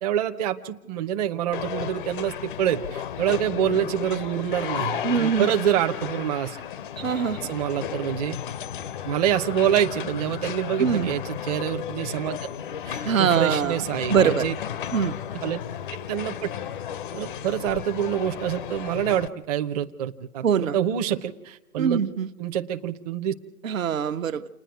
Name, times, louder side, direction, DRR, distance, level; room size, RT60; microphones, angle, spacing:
voice 1, 0.0-6.6 7.4-8.4 9.0-12.4 12.9-14.5 15.4-15.6 16.1-16.5 17.1-22.0 22.4-23.3, right 10 dB, 30° right, 5 dB, 0.8 m, -26 dB
sound 1, 1.5-19.3, left 9 dB, 40° left, 0.6 m, -34 dB
voice 2, 5.0-5.5 7.0-7.4 10.8-11.1 13.0-13.8 14.1-14.5 14.9-15.1 20.4-20.8 21.8-22.3 23.6-24.5, right 7 dB, 65° right, 8 dB, 1.2 m, -23 dB
28.5 x 10.0 x 9.3 m, 1.0 s
hypercardioid pair, 145°, 42 cm